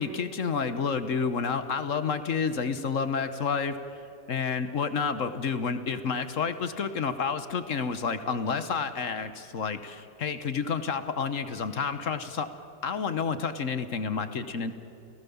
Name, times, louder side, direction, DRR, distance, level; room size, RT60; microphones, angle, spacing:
voice 1, 0.0-3.8 4.3-12.5 12.8-14.7, left 5 dB, 50° left, 11 dB, 1.2 m, -30 dB
29.0 x 17.0 x 7.1 m, 3.0 s
omnidirectional pair, 2.1 m